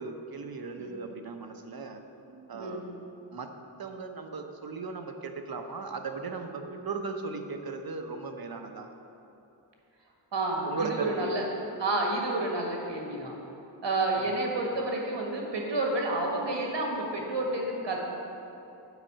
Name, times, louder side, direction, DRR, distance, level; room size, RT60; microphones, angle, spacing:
voice 1, 0.0-2.0 2.5-2.8 3.3-3.5 3.8-8.9 10.7-11.4, right 4 dB, 55° right, 5 dB, 0.8 m, -37 dB
voice 2, 2.3-2.8 6.6-6.8 10.3-11.5 11.8-13.4 13.8-18.0, right 2 dB, 85° right, 0 dB, 1.7 m, -30 dB
8.1 x 5.6 x 7.3 m, 2.9 s
wide cardioid pair, 80°, 42 cm